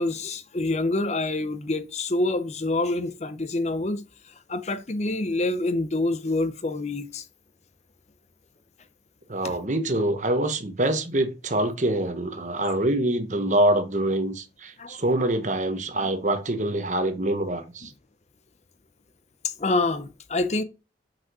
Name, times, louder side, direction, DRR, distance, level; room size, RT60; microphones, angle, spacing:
voice 1, 0.0-4.0 4.5-7.2 9.4-9.6 12.6-12.8 14.8-15.0 19.4-20.6, left 2 dB, 35° left, 0.6 m, -27 dB
voice 2, 9.3-17.9, right 1 dB, 40° right, 1.1 m, -25 dB
5.9 x 5.5 x 6.1 m
head